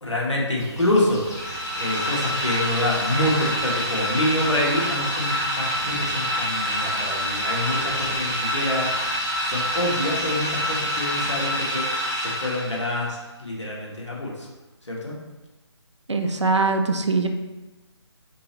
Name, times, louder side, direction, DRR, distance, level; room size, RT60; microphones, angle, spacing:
voice 1, 0.0-14.5 14.9-15.2, left 1 dB, 80° left, -4 dB, 1.2 m, -27 dB
sound 1, 0.5-11.4, left 1 dB, 35° left, 0.7 m, -42 dB
sound 2, 1.2-13.0, equal, 10° left, 1.3 m, -27 dB
Sliding door / Squeak, 2.3-8.4, right 1 dB, 25° right, 1.1 m, -44 dB
voice 2, 16.1-17.3, right 3 dB, 80° right, 6 dB, 0.5 m, -22 dB
4.0 x 3.0 x 2.9 m, 1.1 s
figure-of-eight pair, 150°, 15 cm